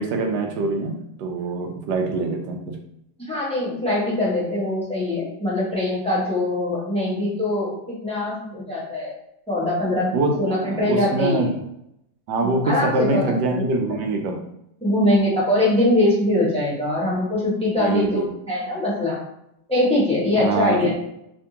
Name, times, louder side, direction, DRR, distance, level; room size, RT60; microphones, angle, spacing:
voice 1, 0.0-2.8 10.1-11.5 12.3-14.4 17.8-18.3 20.4-21.0, right 2 dB, 85° right, 3 dB, 1.2 m, -24 dB
voice 2, 3.3-9.1 9.5-10.1 10.4-11.5 12.4-13.2 13.5-13.6 14.8-19.2 19.7-21.0, left 1 dB, 5° left, -7 dB, 1.1 m, -22 dB
3.4 x 3.3 x 2.8 m, 0.79 s
omnidirectional pair, 1.8 m